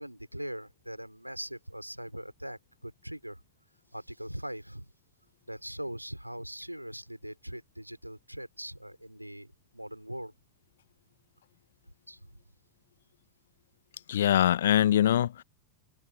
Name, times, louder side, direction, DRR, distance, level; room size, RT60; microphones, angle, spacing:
voice 1, 0.0-3.4 3.9-4.9 5.5-10.3 11.9-12.4, equal, 90° right, 3.5 m, -41 dB
voice 2, 14.1-15.4, left 11 dB, 60° left, 0.7 m, -23 dB
figure-of-eight pair, 90°, 0 cm